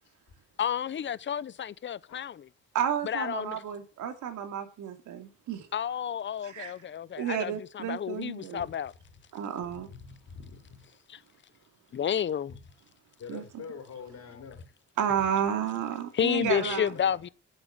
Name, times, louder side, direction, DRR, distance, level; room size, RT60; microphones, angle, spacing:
voice 1, 0.6-2.5 3.0-3.6 5.7-8.9 11.1-11.2 11.9-12.6 15.6-15.7 16.1-17.3, left 9 dB, 40° left, 0.7 m, -31 dB
voice 2, 2.7-5.7 6.4-6.7 7.2-8.7 9.3-9.9 13.3-13.6 15.0-16.9, right 9 dB, 80° right, 2.7 m, -31 dB
voice 3, 9.6-10.8 13.2-14.6 16.4-17.2, left 6 dB, 60° left, 4.0 m, -45 dB
9.2 x 7.8 x 8.8 m
cardioid pair, 90°, 30 cm